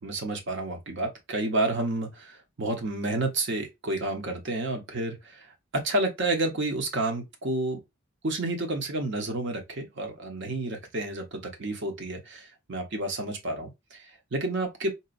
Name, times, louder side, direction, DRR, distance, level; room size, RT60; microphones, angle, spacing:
voice 1, 0.0-7.8 8.2-14.9, right 2 dB, 55° right, 0.8 m, -30 dB
4.1 x 2.2 x 2.4 m
head